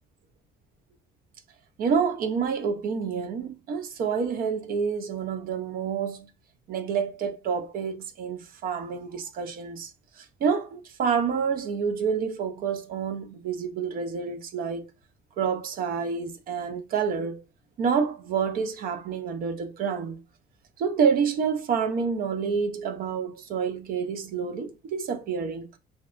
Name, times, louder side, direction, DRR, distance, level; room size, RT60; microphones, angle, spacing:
voice 1, 1.8-6.3 6.7-9.9 10.2-14.8 15.4-17.4 17.8-20.2 20.8-25.7, right 6 dB, 60° right, 0.5 m, -28 dB
2.6 x 2.2 x 2.4 m
cardioid pair, 110°, 17 cm